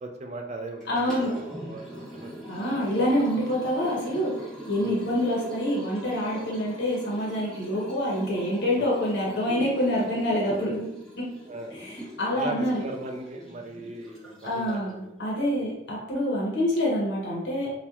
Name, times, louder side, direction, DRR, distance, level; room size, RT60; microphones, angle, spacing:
voice 1, 0.0-3.0 4.8-5.0 8.8-8.9 11.5-11.8 12.3-15.1 15.6-15.8, right 2 dB, 35° right, 3 dB, 0.3 m, -39 dB
Liquid, 0.8-14.9, equal, 5° left, 0.9 m, -42 dB
voice 2, 0.9-1.3 2.5-4.3 4.7-10.8 11.2-11.3 11.7-12.8 14.4-17.7, equal, 75° left, -4 dB, 0.7 m, -26 dB
2.8 x 2.1 x 2.3 m, 0.82 s
head